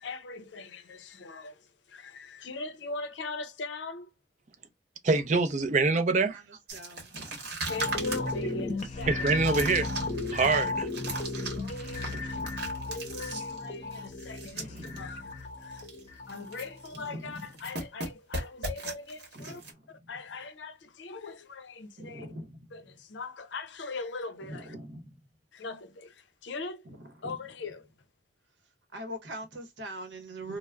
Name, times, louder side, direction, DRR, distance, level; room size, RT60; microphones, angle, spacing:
voice 1, 0.0-4.1 7.7-9.3 11.5-12.4 12.9-15.9 16.3-19.6 19.9-22.3 22.7-24.8 25.5-26.9 27.2-27.9, left 3 dB, 85° left, 0.5 m, -40 dB
voice 2, 5.0-6.6 9.1-10.0 10.3-10.9, right 3 dB, 40° right, 0.5 m, -25 dB
sound 1, 6.7-15.0 15.3-15.4 15.7-16.0 16.3-17.1 17.3-19.7, right 2 dB, 60° right, 1.0 m, -39 dB
voice 3, 6.7-7.3 12.1-12.6 14.5-15.0 19.4-19.6 22.1-22.5 24.7-25.0 28.9-30.6, right 1 dB, 80° right, 0.8 m, -41 dB
sound 2, 7.7-17.0 17.3-17.5, left 3 dB, 40° left, 0.7 m, -35 dB
2.3 x 2.0 x 3.2 m
head